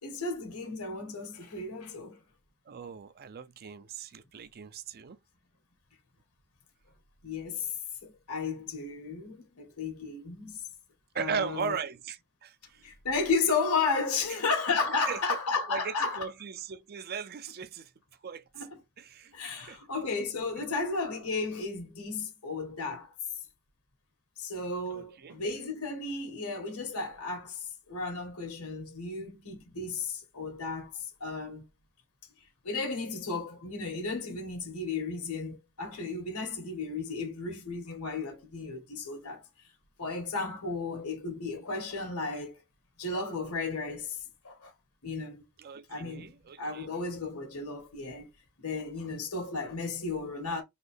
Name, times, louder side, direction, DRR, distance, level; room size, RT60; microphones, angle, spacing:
voice 1, 0.0-2.2 7.2-7.7 8.0-10.6 11.1-11.7 12.8-16.2 18.5-18.7 19.3-23.1 24.4-31.6 32.6-39.4 40.0-42.6 43.0-44.7 45.0-45.4 45.9-46.3 46.6-48.3 48.6-50.6, left 4 dB, 85° left, 1.7 m, -34 dB
voice 2, 2.7-5.2 11.1-12.8 15.0-15.2 15.7-17.9 18.2-18.7 19.0-19.8 24.9-25.4 45.6-46.9, right 6 dB, 45° right, 0.4 m, -38 dB
4.1 x 2.9 x 3.2 m
head